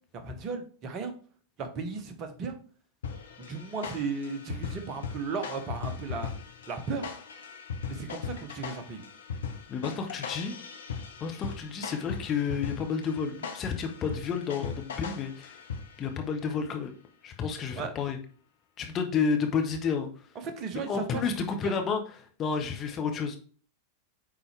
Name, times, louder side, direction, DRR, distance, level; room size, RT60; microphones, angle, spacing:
voice 1, 0.2-1.1 1.6-2.5 3.4-6.3 6.7-7.1 7.8-9.0 16.0-16.1 17.7-17.9 20.6-21.2, right 4 dB, 35° right, 7 dB, 1.2 m, -35 dB
sound 1, 3.0-16.2, left 6 dB, 65° left, 0.9 m, -39 dB
voice 2, 9.7-10.6 11.2-15.6 16.0-16.9 17.2-18.2 18.8-20.1 20.7-23.4, left 6 dB, 30° left, 4 dB, 1.2 m, -31 dB
8.8 x 4.1 x 3.3 m, 0.42 s
figure-of-eight pair, 90°, 0 cm